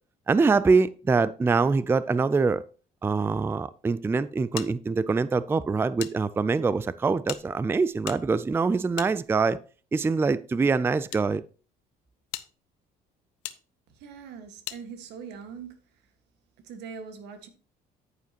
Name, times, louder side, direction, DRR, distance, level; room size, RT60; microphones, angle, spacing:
voice 1, 0.3-2.6 3.0-9.6 9.9-11.4, right 4 dB, 15° right, 0.3 m, -24 dB
sound 1, 4.6-6.1 6.4-6.5 7.2-9.7 10.5-11.2 11.8-11.9 12.3-12.5 13.4-13.6 14.6-14.8, left 15 dB, 90° left, 0.7 m, -40 dB
voice 2, 13.9-15.8 16.6-17.5, right 6 dB, 85° right, 1.7 m, -42 dB
9.6 x 9.1 x 2.9 m
cardioid pair, 110°, 17 cm